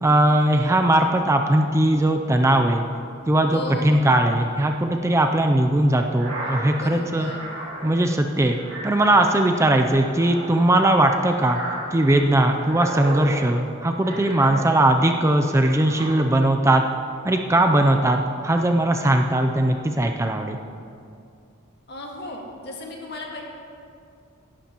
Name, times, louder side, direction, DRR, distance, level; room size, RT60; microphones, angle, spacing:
voice 1, 0.0-2.8 3.3-7.3 7.8-8.6 8.8-11.6 11.9-16.8 17.2-20.6, right 1 dB, 15° right, 4 dB, 0.4 m, -19 dB
voice 2, 3.5-4.1 6.8-7.4 21.9-23.4, left 2 dB, 55° left, 0 dB, 1.8 m, -35 dB
sound 1, 6.1-15.2 15.6-16.6, right 1 dB, 65° right, 3.1 m, -35 dB
17.0 x 11.5 x 3.0 m, 2.4 s
head